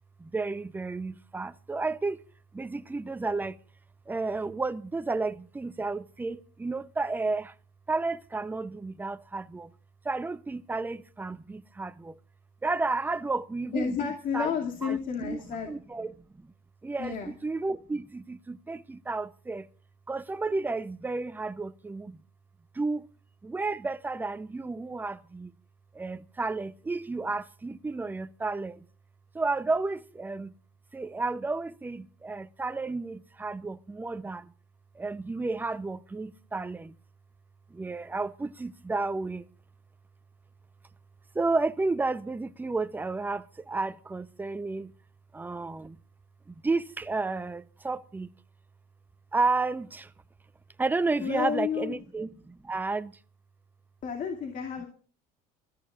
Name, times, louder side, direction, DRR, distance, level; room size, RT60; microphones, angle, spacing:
voice 1, 0.2-2.2 2.5-3.6 4.1-7.5 7.9-9.7 10.0-12.2 12.6-14.5 14.8-15.4 15.7-16.5 16.8-19.7 20.1-22.2 22.7-23.1 23.4-25.5 25.9-28.8 29.3-30.5 30.9-34.5 34.9-36.9 37.7-39.4 41.3-44.9 45.3-46.0 46.5-48.3 49.3-50.1 50.8-53.1, right 3 dB, 10° right, 0.6 m, -32 dB
voice 2, 13.7-15.7 17.0-17.3 51.2-52.0 54.0-54.9, left 7 dB, 50° left, 2.4 m, -31 dB
28.0 x 14.0 x 2.4 m
cardioid pair, 130°, 18 cm